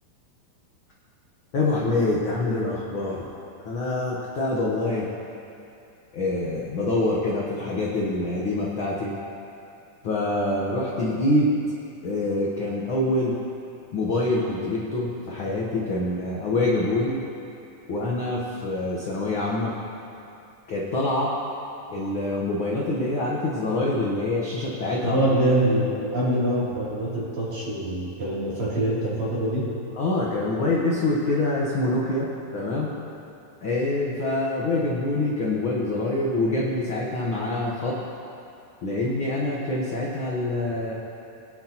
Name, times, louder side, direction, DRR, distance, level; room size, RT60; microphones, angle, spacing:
voice 1, 1.5-3.3 3.6-5.1 6.1-9.1 10.0-11.5 12.0-13.3 13.9-17.2 17.9-19.7 20.7-21.3 21.9-25.2 30.0-32.9 33.6-38.0 38.8-40.9, left 2 dB, 80° left, -5 dB, 1.1 m, -25 dB
voice 2, 25.0-29.7, right 1 dB, 50° right, -9 dB, 4.2 m, -24 dB
21.5 x 9.6 x 3.0 m, 2.7 s
omnidirectional pair, 4.2 m